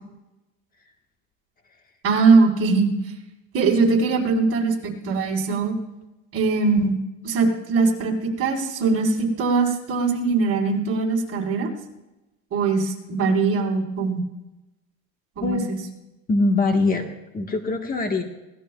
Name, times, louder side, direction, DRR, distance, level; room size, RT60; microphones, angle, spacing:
voice 1, 2.0-2.9 3.5-5.7 6.3-6.9 7.2-11.7 12.5-14.2 15.4-15.8, right 4 dB, 45° right, -2 dB, 4.4 m, -21 dB
voice 2, 16.3-17.1 17.3-18.2, left 3 dB, 25° left, 3 dB, 1.4 m, -22 dB
24.5 x 18.5 x 2.3 m, 0.99 s
cardioid pair, 130°, 33 cm